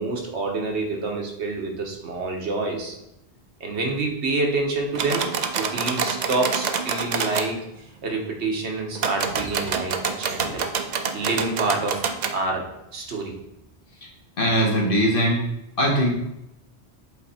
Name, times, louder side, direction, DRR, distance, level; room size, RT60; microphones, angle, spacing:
voice 1, 0.0-3.0 3.6-5.3 5.5-10.6 11.1-12.1 12.3-13.3, right 3 dB, 90° right, 1 dB, 1.4 m, -27 dB
sound 1, 4.9-7.5 8.9-12.4, right 6 dB, 50° right, 0.6 m, -27 dB
voice 2, 14.4-15.4 15.8-16.1, equal, 55° left, -1 dB, 1.5 m, -21 dB
8.0 x 3.3 x 4.2 m, 0.85 s
omnidirectional pair, 1.1 m